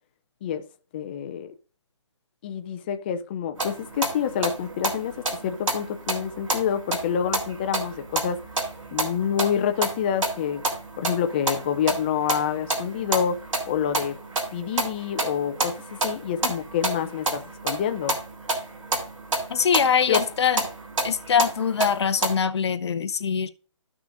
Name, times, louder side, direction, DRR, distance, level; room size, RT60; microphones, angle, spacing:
voice 1, 0.9-1.5 2.4-8.4 8.9-10.6 11.0-14.2 14.5-18.2 20.1-20.2, left 8 dB, 20° left, 0.4 m, -27 dB
sound 1, 3.6-22.3, right 2 dB, 80° right, 3.1 m, -30 dB
voice 2, 19.5-20.6 21.0-23.5, left 7 dB, 60° left, 0.7 m, -23 dB
14.0 x 6.1 x 2.5 m
hypercardioid pair, 155°, 16 cm